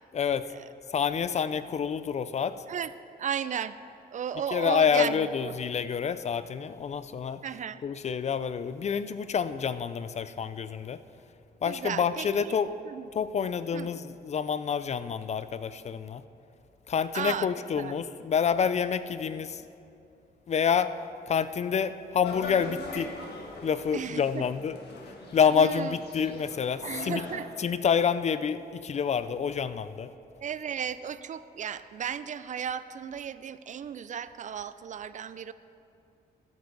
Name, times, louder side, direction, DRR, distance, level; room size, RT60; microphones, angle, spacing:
voice 1, 0.1-0.5 0.9-2.6 4.5-7.4 7.8-11.0 11.6-12.7 13.1-16.2 16.9-19.6 20.5-20.9 21.3-23.1 23.6-24.8 25.3-27.2 27.6-30.1, left 7 dB, 40° left, 14 dB, 0.4 m, -28 dB
voice 2, 3.2-3.8 4.1-5.6 7.4-7.8 11.7-12.6 12.8-13.1 13.7-13.9 17.1-18.0 23.9-24.5 25.5-26.0 26.8-27.5 30.4-35.5, right 8 dB, 45° right, 14 dB, 0.4 m, -35 dB
sound 1, 22.2-27.4, left 3 dB, 75° left, 1.5 m, -41 dB
12.5 x 10.5 x 4.0 m, 2.6 s
cardioid pair, 110°, 17 cm